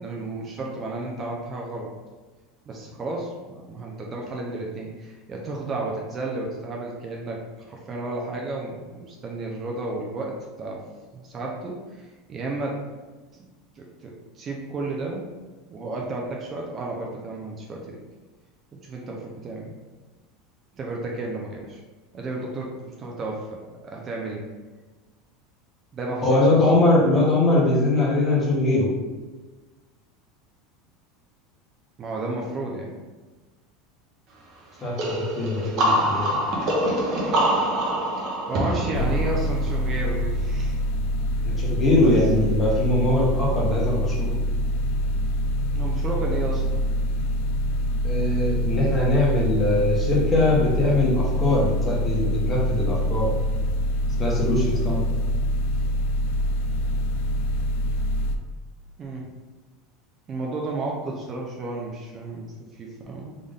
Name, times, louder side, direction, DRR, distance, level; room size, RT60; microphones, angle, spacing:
voice 1, 0.0-1.9 2.7-12.8 13.3-13.5 13.8-15.3 15.7-18.0 18.8-19.8 20.8-21.8 22.1-24.5 25.9-27.2 32.0-32.9 38.5-40.8 41.3-41.5 42.0-42.5 45.7-46.8 59.0-59.3 60.3-62.5 62.7-63.4, right 2 dB, 30° right, -1 dB, 0.6 m, -32 dB
voice 2, 26.2-28.9 34.8-36.4 41.4-44.4 48.0-53.3 54.2-55.0, left 2 dB, 20° left, -4 dB, 1.1 m, -22 dB
sound 1, 35.0-40.5, right 1 dB, 50° right, 1.0 m, -25 dB
sound 2, 38.9-58.4, equal, 70° left, 0.4 m, -25 dB
3.7 x 2.5 x 3.6 m, 1.2 s
supercardioid pair, 135°, 0 cm